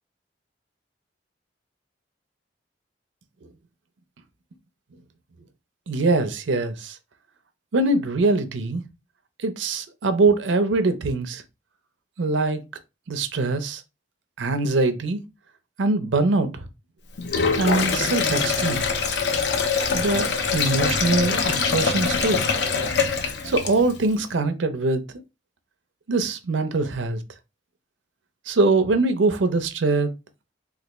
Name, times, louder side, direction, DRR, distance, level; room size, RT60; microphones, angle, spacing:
voice 1, 5.9-7.0 7.7-8.8 9.4-11.4 12.2-12.6 13.1-13.8 14.4-15.2 15.8-16.7 17.6-18.8 19.9-22.5 23.4-25.0 26.1-27.2 28.5-30.1, right 3 dB, 85° right, 0.5 m, -23 dB
Sink (filling or washing), 17.2-24.0, left 5 dB, 65° left, 0.5 m, -24 dB
3.3 x 2.3 x 3.0 m
head